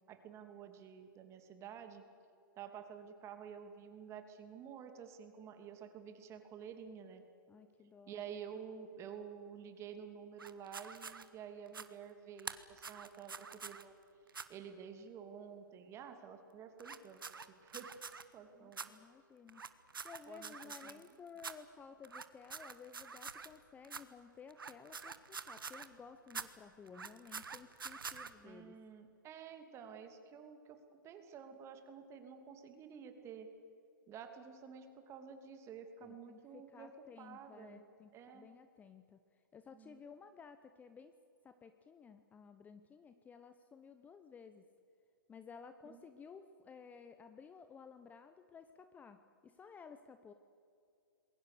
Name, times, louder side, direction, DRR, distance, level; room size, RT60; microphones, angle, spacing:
voice 1, 0.1-2.0 2.6-7.2 8.1-13.9 14.5-18.0 18.3-18.9 20.3-21.0 28.4-30.8 31.0-33.5 34.1-36.9 37.2-37.8 38.1-38.5 39.7-40.0 45.9-46.0, right 7 dB, 25° right, 7 dB, 2.7 m, -50 dB
voice 2, 7.5-8.2 18.5-19.7 20.0-28.8 36.0-41.1 41.4-44.7 45.3-50.3, left 6 dB, 15° left, 10 dB, 0.9 m, -55 dB
sound 1, 10.4-11.2 11.7-11.9 12.4-13.8 14.3-14.5 16.8-18.2 18.7-18.9 19.5-21.1 21.4-21.5 22.0-23.6 23.8-24.0 24.5-25.9 26.3-26.5 26.9-28.3, right 5 dB, 80° right, 1.4 m, -46 dB
27.5 x 22.0 x 6.8 m, 2.5 s
figure-of-eight pair, 120°, 11 cm